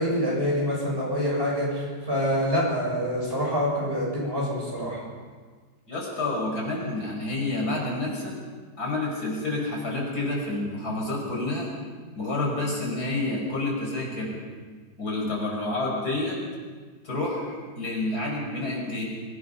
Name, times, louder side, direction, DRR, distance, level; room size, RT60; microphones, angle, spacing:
voice 1, 0.0-5.0, equal, 30° right, -4 dB, 7.5 m, -26 dB
voice 2, 5.9-8.3 8.8-11.7 12.2-14.4 15.0-16.4 17.0-19.1, left 2 dB, 55° left, -2 dB, 5.9 m, -29 dB
25.0 x 19.0 x 5.7 m, 1.5 s
omnidirectional pair, 2.0 m